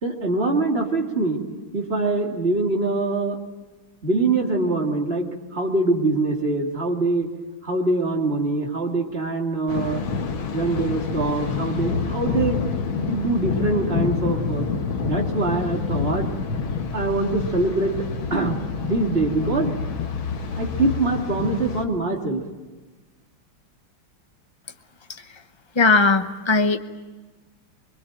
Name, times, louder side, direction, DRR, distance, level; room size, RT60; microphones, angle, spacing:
voice 1, 0.0-1.4 1.7-3.4 4.0-7.3 7.6-10.0 10.5-12.7 12.9-14.7 15.0-16.4 16.9-18.6 18.8-19.8 20.5-22.4, right 2 dB, 30° right, 1 dB, 2.8 m, -24 dB
Thunder, 9.7-21.8, left 5 dB, 75° left, 2.3 m, -27 dB
voice 2, 25.8-26.8, left 3 dB, 35° left, 8 dB, 0.4 m, -18 dB
24.0 x 22.5 x 9.0 m, 1.2 s
omnidirectional pair, 2.2 m